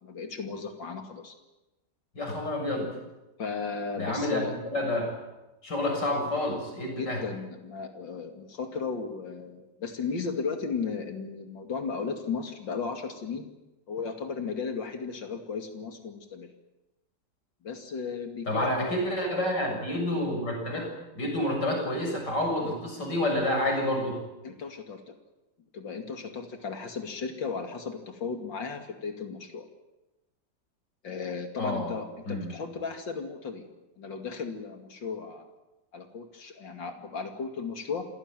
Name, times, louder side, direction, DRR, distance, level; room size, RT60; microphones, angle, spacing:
voice 1, 0.0-1.3 3.4-4.5 7.0-13.5 13.9-16.5 17.6-19.0 24.4-25.1 25.7-29.6 31.0-33.7 34.0-35.5 35.9-38.0, left 5 dB, 85° left, 5 dB, 3.1 m, -35 dB
voice 2, 2.2-3.0 4.0-5.2 5.6-7.2 18.5-24.2 31.6-31.9 32.3-32.5, left 1 dB, 70° left, 2 dB, 7.7 m, -29 dB
27.5 x 16.5 x 9.1 m, 1.0 s
omnidirectional pair, 2.0 m